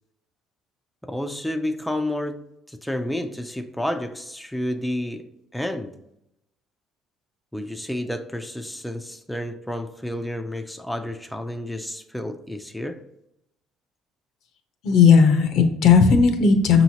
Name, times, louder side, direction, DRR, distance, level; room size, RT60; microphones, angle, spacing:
voice 1, 1.0-5.9 7.5-13.0, left 1 dB, 5° left, 0.4 m, -30 dB
voice 2, 14.8-16.8, left 5 dB, 70° left, 0.6 m, -15 dB
5.4 x 2.9 x 2.8 m
supercardioid pair, 75°, 0 cm